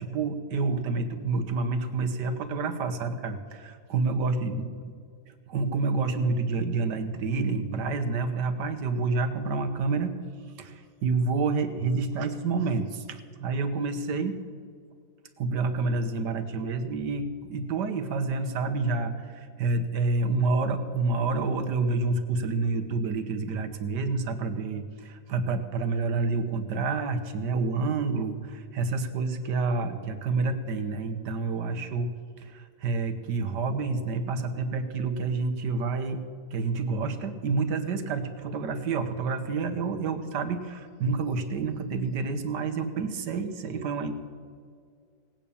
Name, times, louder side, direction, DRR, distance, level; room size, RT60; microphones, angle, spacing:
voice 1, 0.0-4.7 5.3-10.2 10.6-14.4 15.4-32.1 32.4-36.3 36.5-44.1, right 3 dB, 75° right, 8 dB, 1.6 m, -28 dB
18.0 x 9.0 x 7.0 m, 2.1 s
omnidirectional pair, 1.9 m